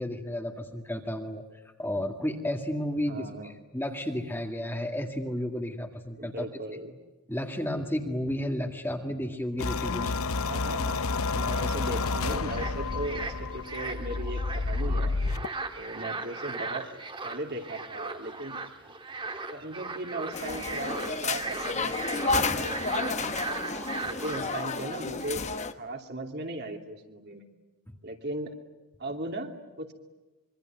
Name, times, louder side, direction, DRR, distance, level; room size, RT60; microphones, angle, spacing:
voice 1, 0.0-1.4 1.8-6.5 7.3-10.5 24.4-24.5 27.9-28.0, left 1 dB, 10° left, 4 dB, 1.9 m, -32 dB
voice 2, 3.1-3.6 6.2-7.0 10.4-11.0 11.3-15.1 15.7-16.9 17.2-18.6 19.5-23.5 24.0-25.4 25.8-27.4 28.0-28.5 29.0-29.9, right 2 dB, 50° right, 3 dB, 2.8 m, -37 dB
sound 1, 9.6-15.5, left 3 dB, 70° left, 0.8 m, -30 dB
sound 2, 11.5-25.1, right 3 dB, 20° right, 1.7 m, -38 dB
sound 3, 20.3-25.7, left 4 dB, 30° left, 1.2 m, -31 dB
25.5 x 24.0 x 9.1 m, 1.1 s
head